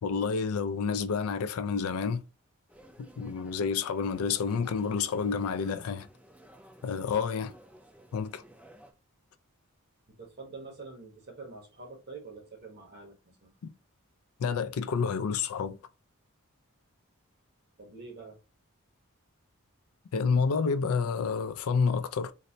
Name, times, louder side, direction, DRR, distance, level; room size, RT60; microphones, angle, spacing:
voice 1, 0.0-2.2 3.0-6.1 6.8-7.5 8.1-8.4 13.6-13.7 14.4-15.8 20.1-22.3, left 5 dB, 80° left, 0.4 m, -29 dB
sound 1, 2.7-8.9, equal, 5° right, 0.4 m, -55 dB
voice 2, 10.1-13.5 17.8-18.4, right 3 dB, 50° right, 1.2 m, -46 dB
4.0 x 2.1 x 2.7 m
head